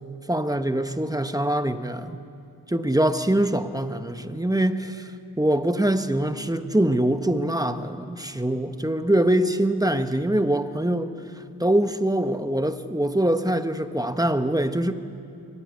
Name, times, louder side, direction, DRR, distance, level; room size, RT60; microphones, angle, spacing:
voice 1, 0.3-2.2 2.7-5.1 5.4-11.1 11.6-14.9, right 1 dB, 10° right, 9 dB, 1.1 m, -23 dB
24.0 x 16.5 x 9.8 m, 2.5 s
wide cardioid pair, 70°, 39 cm